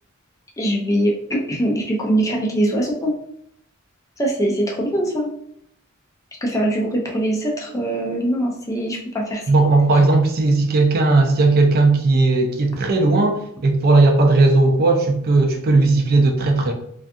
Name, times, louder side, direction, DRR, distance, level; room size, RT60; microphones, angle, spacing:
voice 1, 0.6-3.1 4.2-5.3 6.4-9.4, right 1 dB, 15° left, -1 dB, 0.4 m, -22 dB
voice 2, 9.5-16.7, right 3 dB, 50° right, 4 dB, 0.4 m, -16 dB
2.4 x 2.3 x 2.6 m, 0.70 s
head